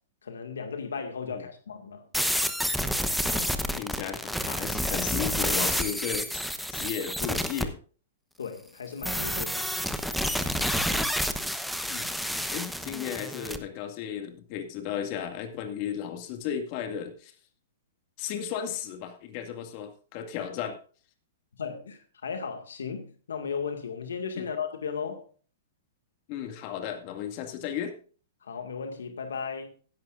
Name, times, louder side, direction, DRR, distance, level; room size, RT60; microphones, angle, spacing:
voice 1, 0.2-2.1 8.4-9.7 21.6-25.3 28.4-29.7, left 6 dB, 85° left, 2.0 m, -35 dB
sound 1, 2.1-7.7 9.0-13.6, equal, ahead, 1.0 m, -29 dB
voice 2, 3.8-7.8 11.9-12.1 12.5-17.3 18.2-20.8 24.4-24.5 26.3-27.9, left 9 dB, 45° left, 2.1 m, -35 dB
15.5 x 11.5 x 2.6 m
hypercardioid pair, 125°, 0 cm